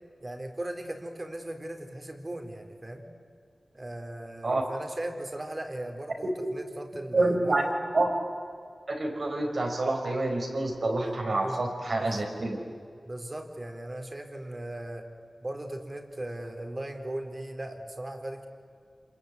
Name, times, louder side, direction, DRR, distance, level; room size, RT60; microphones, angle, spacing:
voice 1, 0.2-3.1 3.7-7.7 11.0-11.2 11.4-11.6 11.9-12.2 13.1-15.1 15.4-18.5, right 1 dB, 35° right, 5 dB, 4.1 m, -38 dB
voice 2, 7.1-7.6 7.9-8.1 8.9-12.6, right 2 dB, 65° right, 2 dB, 5.4 m, -27 dB
27.0 x 22.5 x 9.6 m, 2.3 s
cardioid pair, 50°, 0 cm